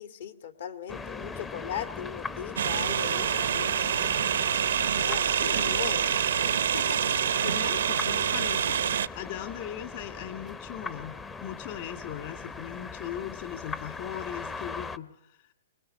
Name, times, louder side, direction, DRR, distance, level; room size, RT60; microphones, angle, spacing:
voice 1, 0.0-3.9 4.9-5.3 5.6-6.2 6.4-7.1, left 9 dB, 65° left, 9 dB, 2.2 m, -38 dB
sound 1, 0.9-15.0, left 4 dB, 15° left, 0.7 m, -40 dB
sound 2, 2.6-9.1, right 8 dB, 75° right, 0.7 m, -26 dB
voice 2, 5.4-5.9 7.4-15.4, left 11 dB, 45° left, 8 dB, 2.3 m, -39 dB
24.5 x 21.0 x 5.6 m, 0.77 s
hypercardioid pair, 140°, 0 cm